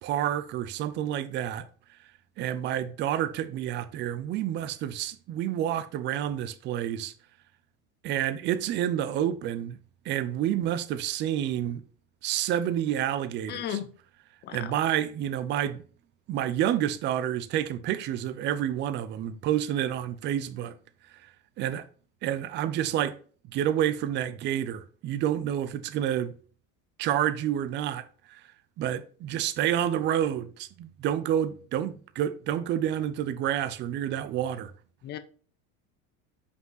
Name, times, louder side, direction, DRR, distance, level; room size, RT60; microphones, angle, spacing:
voice 1, 0.0-1.7 2.4-7.1 8.0-9.8 10.0-11.8 12.2-13.8 14.5-15.8 16.3-20.8 21.2-21.8 22.2-23.2 23.4-26.3 27.0-28.4 28.8-34.7, right 11 dB, 30° right, 0.5 m, -29 dB
voice 2, 13.5-13.8 14.5-14.6 35.0-35.2, left 10 dB, 25° left, 0.5 m, -33 dB
5.4 x 5.3 x 3.9 m
supercardioid pair, 150°, 39 cm